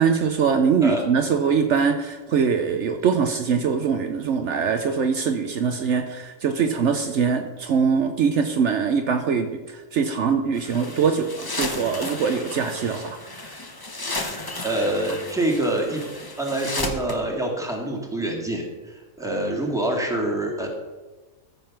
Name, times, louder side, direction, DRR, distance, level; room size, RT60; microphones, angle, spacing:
voice 1, 0.0-13.6, right 6 dB, 65° right, 6 dB, 1.0 m, -23 dB
sound 1, 10.5-17.2, left 2 dB, 20° left, 0.9 m, -33 dB
voice 2, 14.6-16.0 16.4-20.7, right 1 dB, ahead, -1 dB, 1.9 m, -26 dB
13.5 x 5.4 x 5.8 m, 1.2 s
omnidirectional pair, 1.4 m